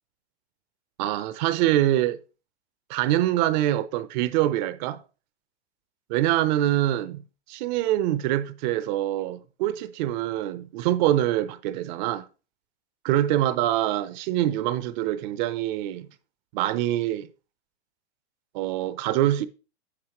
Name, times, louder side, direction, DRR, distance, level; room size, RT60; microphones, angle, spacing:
voice 1, 1.0-2.2 2.9-5.0 6.1-7.2 7.5-12.3 13.0-16.1 16.5-17.3 18.5-19.5, right 13 dB, 40° right, 0.7 m, -24 dB
9.8 x 6.2 x 3.0 m
hypercardioid pair, 135°, 34 cm